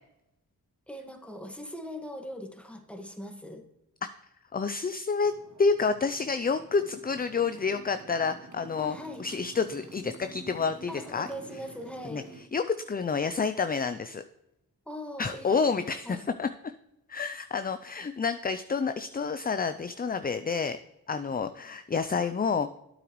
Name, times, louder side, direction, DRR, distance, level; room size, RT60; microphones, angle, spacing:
voice 1, 0.9-3.6 8.8-9.2 10.9-12.3 14.9-16.2 21.1-21.3, left 1 dB, 5° left, 4 dB, 1.7 m, -41 dB
voice 2, 4.5-5.3 5.6-11.3 12.1-14.2 15.2-16.7 17.1-20.8 21.1-22.8, left 5 dB, 25° left, 10 dB, 0.4 m, -29 dB
Motorcycle, 5.2-12.4, right 3 dB, 50° right, 1.2 m, -49 dB
9.1 x 7.9 x 3.1 m, 0.89 s
cardioid pair, 45°, 38 cm